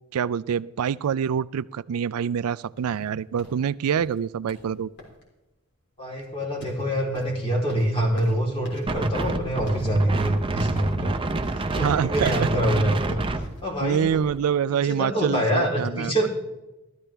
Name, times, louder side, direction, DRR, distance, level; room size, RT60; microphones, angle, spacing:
voice 1, 0.1-4.9 11.8-12.5 13.8-16.3, right 8 dB, 75° right, 19 dB, 0.4 m, -26 dB
sound 1, 2.7-14.1, left 1 dB, 55° left, 3.6 m, -47 dB
voice 2, 6.0-11.1 11.4-13.2 13.6-14.2 14.7-16.3, right 1 dB, 25° left, -2 dB, 3.4 m, -25 dB
Wind, 8.9-14.4, right 2 dB, 25° right, 0.7 m, -28 dB
15.0 x 13.0 x 3.4 m, 1.0 s
head